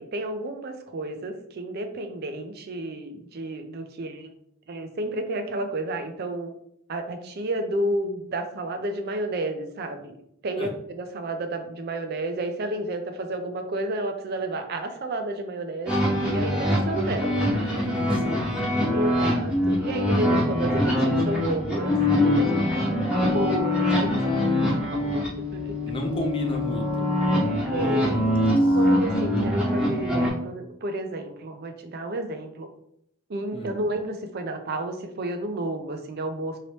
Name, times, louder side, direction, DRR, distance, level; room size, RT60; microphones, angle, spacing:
voice 1, 0.0-4.3 4.7-6.5 6.9-10.2 10.4-17.8 18.9-24.5 24.9-25.2 25.5-25.8 27.6-28.2 28.5-32.7 33.3-36.6, right 1 dB, 50° right, 6 dB, 0.4 m, -31 dB
sound 1, 15.9-30.3, left 1 dB, 5° right, 0.8 m, -23 dB
voice 2, 17.6-18.4 24.4-24.8 25.8-27.0 27.7-28.2 28.6-28.8 33.5-33.8, equal, 25° left, 2 dB, 0.5 m, -34 dB
2.9 x 2.9 x 3.0 m, 0.72 s
head